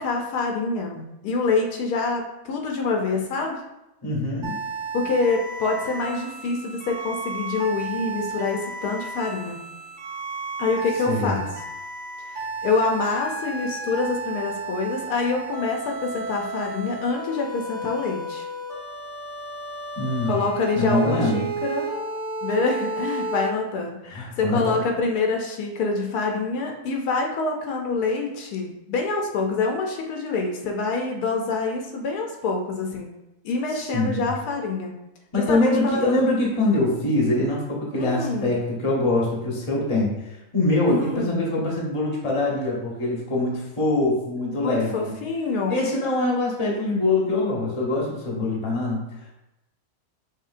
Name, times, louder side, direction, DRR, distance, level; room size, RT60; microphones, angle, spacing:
voice 1, 0.0-3.6 4.9-9.6 10.6-11.5 12.3-18.5 20.2-21.9 22.4-33.1 33.4-34.9 35.3-36.3 37.9-38.5 40.9-41.5 44.6-45.8, left 3 dB, 80° left, 2 dB, 1.2 m, -26 dB
voice 2, 4.0-4.6 11.1-11.4 20.0-20.4 20.7-21.4 24.0-24.7 33.7-34.3 35.3-45.1 45.7-49.0, left 2 dB, 25° left, -3 dB, 0.9 m, -24 dB
sound 1, 4.4-23.5, right 3 dB, 55° right, 1.5 m, -33 dB
5.5 x 3.0 x 2.5 m, 0.92 s
omnidirectional pair, 1.7 m